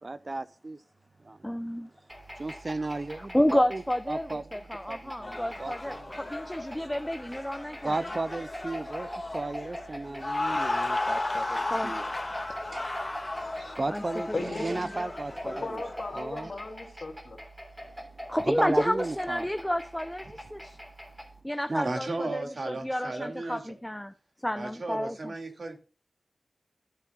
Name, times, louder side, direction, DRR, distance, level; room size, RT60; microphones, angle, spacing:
voice 1, 0.0-0.8 1.2-1.4 2.4-3.8 4.1-6.3 7.8-9.1 9.3-12.1 12.7-12.9 13.8-15.8 16.1-16.5 18.4-19.5 21.7-21.9, right 2 dB, 45° right, 0.5 m, -34 dB
voice 2, 1.4-1.9 3.2-8.0 11.6-11.9 13.9-14.0 14.3-14.4 18.3-20.8 21.4-24.1 24.4-25.3, left 1 dB, 10° left, 0.6 m, -30 dB
sound 1, 2.1-21.4, equal, 10° right, 3.2 m, -44 dB
sound 2, 5.2-16.4, left 2 dB, 30° left, 2.0 m, -35 dB
voice 3, 14.3-14.7 15.4-17.4, left 3 dB, 65° left, 3.2 m, -36 dB
voice 4, 21.8-23.8 24.5-25.8, right 2 dB, 65° right, 2.4 m, -35 dB
15.0 x 7.2 x 2.4 m
cardioid pair, 50°, 0 cm